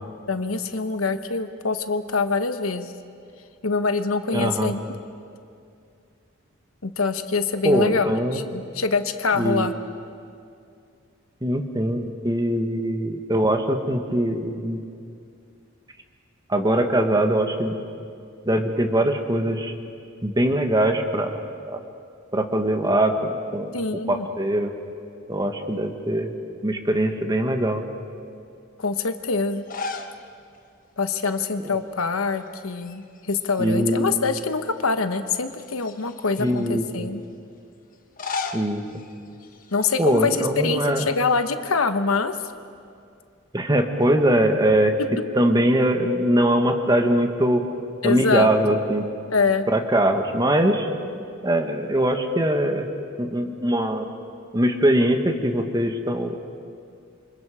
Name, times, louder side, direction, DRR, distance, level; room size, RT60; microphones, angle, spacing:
voice 1, 0.3-2.9 3.6-4.8 6.8-9.7 23.7-24.3 28.8-29.6 31.0-37.2 39.7-42.4 48.0-48.5 49.3-49.7, left 4 dB, 90° left, 9 dB, 1.2 m, -24 dB
voice 2, 4.3-4.7 7.6-8.4 9.4-9.7 11.4-14.8 16.5-17.8 18.4-19.7 20.2-21.8 22.3-23.7 24.1-24.7 25.3-26.3 26.6-27.8 31.6-31.8 33.6-34.1 36.4-37.1 38.5-38.8 40.0-41.0 43.5-44.9 45.3-47.6 48.0-49.1 49.7-50.9 51.4-52.9 53.2-54.1 54.5-56.4, right 1 dB, 20° right, 5 dB, 1.5 m, -22 dB
sound 1, 29.5-30.2 30.5-30.6 32.0-32.5 32.8-33.9 34.5-34.6 35.5-36.7 37.9-40.1, left 4 dB, 40° left, 1.2 m, -35 dB
28.5 x 25.5 x 5.0 m, 2.4 s
head